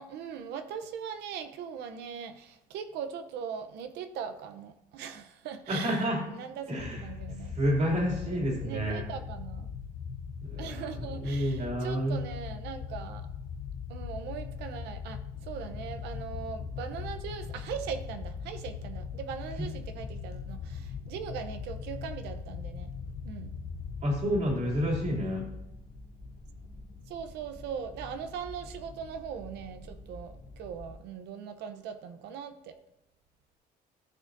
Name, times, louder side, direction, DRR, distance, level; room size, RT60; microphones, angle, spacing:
voice 1, 0.0-6.0 6.3-7.5 8.6-9.7 10.6-13.3 13.9-22.9 23.2-23.6 27.1-32.8, right 7 dB, 85° right, 9 dB, 0.8 m, -40 dB
voice 2, 5.7-6.2 6.7-7.0 7.4-9.0 10.4-10.9 11.2-12.2 24.0-25.5, equal, 45° right, -2 dB, 2.9 m, -29 dB
sound 1, 6.8-25.3, left 6 dB, 70° left, 0.8 m, -40 dB
sound 2, 15.3-31.0, left 2 dB, 30° left, 2.5 m, -48 dB
13.5 x 6.4 x 2.7 m, 0.87 s
cardioid pair, 110°, 17 cm